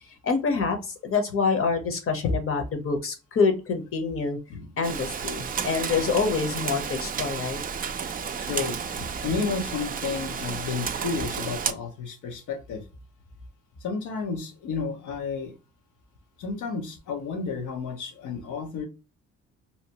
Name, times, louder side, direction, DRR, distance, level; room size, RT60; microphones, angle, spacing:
voice 1, 0.2-4.4 4.8-7.6, left 4 dB, 45° left, 5 dB, 0.9 m, -26 dB
Rain, 4.8-11.7, right 6 dB, 30° right, 0.4 m, -32 dB
voice 2, 8.4-8.8 9.2-12.8 13.8-15.5 16.4-18.9, left 5 dB, 80° left, 5 dB, 0.8 m, -31 dB
2.9 x 2.0 x 2.8 m, 0.30 s
cardioid pair, 90°, 30 cm